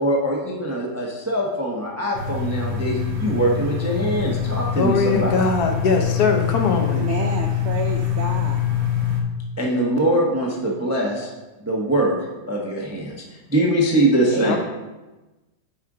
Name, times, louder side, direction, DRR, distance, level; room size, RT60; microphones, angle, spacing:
voice 1, 0.0-5.4 9.6-11.3 11.6-12.1 12.5-13.2 13.5-14.6, right 1 dB, 20° right, -1 dB, 0.4 m, -22 dB
sound 1, 2.1-9.2, left 8 dB, 55° right, 1.3 m, -24 dB
voice 2, 4.8-7.1 14.4-14.6, left 4 dB, 65° left, 4 dB, 1.2 m, -21 dB
voice 3, 6.8-8.6 14.3-14.6, right 5 dB, 90° right, 3 dB, 0.6 m, -29 dB
8.5 x 5.0 x 3.8 m, 1.1 s
omnidirectional pair, 1.9 m